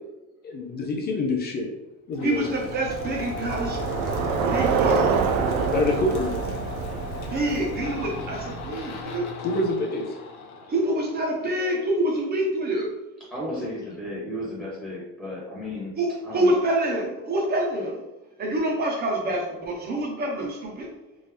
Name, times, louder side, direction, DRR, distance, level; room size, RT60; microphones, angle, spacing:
voice 1, 0.4-1.7 2.1-2.5 5.6-6.3 9.4-10.2 13.6-13.7, left 2 dB, 30° left, 0 dB, 0.5 m, -26 dB
sound 1, 2.1-11.7, left 5 dB, 65° left, 0.9 m, -37 dB
voice 2, 2.2-3.8 4.4-5.2 7.3-9.3 10.7-12.9 16.0-18.0 18.4-20.9, right 1 dB, 30° right, -1 dB, 1.0 m, -26 dB
Bicycle, 2.5-9.0, right 5 dB, 70° right, 0.5 m, -27 dB
voice 3, 13.3-15.9 16.2-16.5, left 1 dB, ahead, -7 dB, 1.3 m, -34 dB
3.6 x 2.7 x 3.4 m, 0.99 s
cardioid pair, 150°, 33 cm